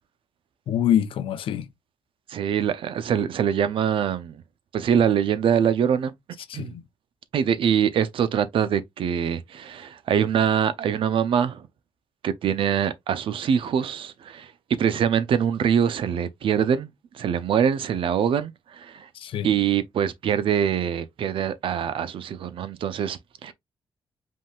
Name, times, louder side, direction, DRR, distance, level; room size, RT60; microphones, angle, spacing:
voice 1, 0.7-1.7 6.5-6.8 19.1-19.5, left 10 dB, 75° left, 0.6 m, -25 dB
voice 2, 2.3-4.4 4.7-6.1 6.5-6.7 7.3-11.7 12.2-14.5 14.8-16.9 17.1-19.1 19.4-23.5, right 8 dB, 70° right, 0.6 m, -24 dB
5.3 x 3.7 x 2.4 m
cardioid pair, 80°, 9 cm